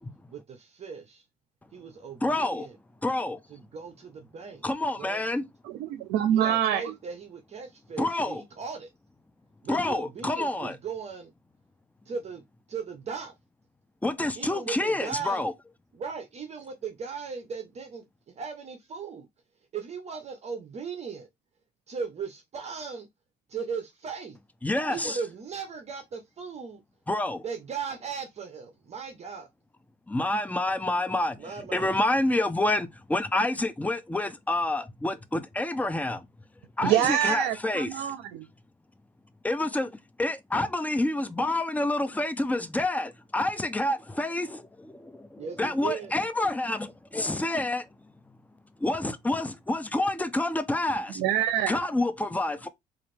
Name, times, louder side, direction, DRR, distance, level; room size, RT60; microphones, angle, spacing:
voice 1, 0.3-1.2 1.7-2.8 3.5-4.6 5.0-5.2 6.3-8.9 9.6-11.3 12.1-12.4 12.7-13.3 14.4-15.5 15.9-18.0 18.3-19.3 19.7-21.3 21.9-23.1 23.5-24.4 24.9-26.8 27.4-29.5 31.4-32.0 45.4-46.1, right 6 dB, 40° right, 0.8 m, -37 dB
voice 2, 2.2-2.7 3.0-3.4 4.6-5.4 8.0-8.4 9.7-10.8 14.0-15.5 24.6-25.2 27.1-27.4 30.1-31.4 31.7-36.3 36.8-38.2 39.4-47.8 48.8-51.2 51.7-52.7, left 2 dB, 10° left, 0.5 m, -28 dB
voice 3, 5.7-6.9 36.8-38.5 51.1-51.8, right 10 dB, 90° right, 0.5 m, -26 dB
4.0 x 2.5 x 3.2 m
cardioid pair, 110°, 17 cm